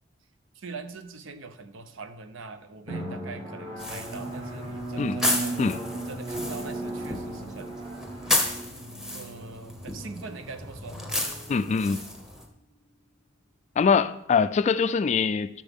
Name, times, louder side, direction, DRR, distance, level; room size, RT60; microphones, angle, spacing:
voice 1, 0.5-5.6 6.0-7.8 9.1-11.0, right 4 dB, 75° right, 0.7 m, -42 dB
Drum, 2.9-12.2, right 2 dB, 35° right, 2.6 m, -37 dB
sound 1, 3.8-12.5, left 1 dB, 5° right, 1.0 m, -33 dB
voice 2, 11.5-12.0 13.8-15.6, left 5 dB, 35° left, 0.3 m, -23 dB
12.0 x 6.1 x 3.5 m
head